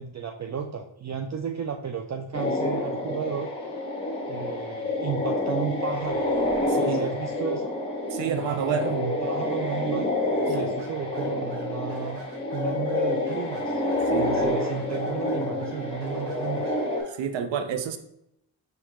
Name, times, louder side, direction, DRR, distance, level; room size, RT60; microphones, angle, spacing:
voice 1, 0.0-3.5 4.3-6.3 6.7-7.7 8.3-10.1 10.5-12.2 12.5-13.8 14.1-16.8, right 7 dB, 40° right, 3 dB, 0.5 m, -33 dB
sound 1, 2.3-17.0, left 2 dB, 15° left, 1.4 m, -28 dB
voice 2, 6.7-7.1 8.1-8.9 10.6-10.7 14.1-14.5 17.1-18.0, right 7 dB, 85° right, 9 dB, 0.6 m, -29 dB
sound 2, 10.5-17.2, right 3 dB, 70° right, 1.0 m, -48 dB
4.3 x 3.9 x 2.9 m, 0.78 s
cardioid pair, 50°, 44 cm